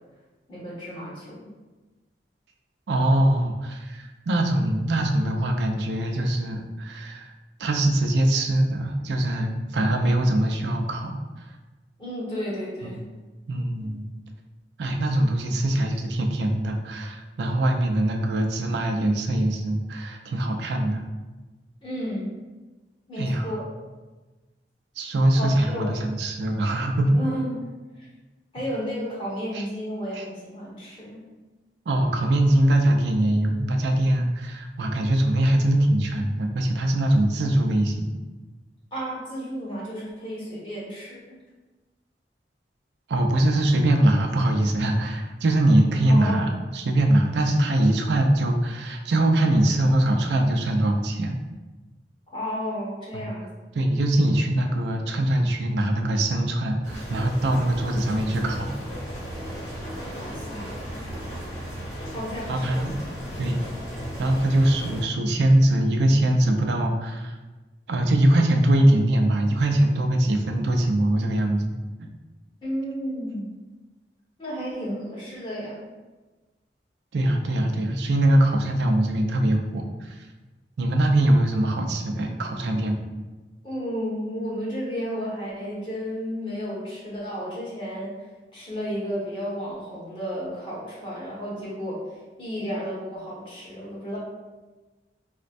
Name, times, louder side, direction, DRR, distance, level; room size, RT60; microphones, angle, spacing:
voice 1, 0.5-1.5 12.0-13.0 21.8-22.3 23.1-23.7 25.4-25.9 27.1-27.7 28.5-31.2 38.9-41.4 46.1-46.4 52.3-53.5 60.1-60.8 62.1-62.8 72.6-73.5 74.4-75.8 83.6-88.1 88.5-92.0 92.4-94.2, equal, 30° left, -8 dB, 1.2 m, -32 dB
voice 2, 2.9-7.3 7.6-11.2 12.8-13.0 13.5-14.1 14.8-21.0 23.2-23.5 25.0-27.2 29.5-29.6 30.1-30.3 31.9-38.1 43.1-51.4 53.1-53.3 53.8-58.7 62.5-63.0 63.4-63.6 64.2-67.4 67.9-71.7 77.1-80.2 80.8-83.1, right 1 dB, 70° right, 3 dB, 0.4 m, -22 dB
sound 1, 56.8-65.0, equal, 75° left, 1.4 m, -35 dB
4.1 x 2.1 x 2.5 m, 1.2 s
head